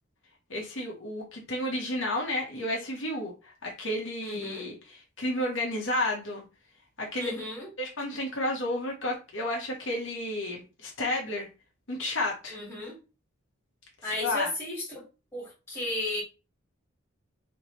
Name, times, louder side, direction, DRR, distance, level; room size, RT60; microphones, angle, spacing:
voice 1, 0.5-6.4 7.0-7.3 7.8-11.5 11.9-12.6 14.2-14.5, left 1 dB, 65° left, 1.3 m, -31 dB
voice 2, 4.2-4.7 7.2-7.7 12.5-13.0 14.0-15.1 15.3-16.2, left 2 dB, 10° left, 2.1 m, -34 dB
5.0 x 2.9 x 3.1 m
head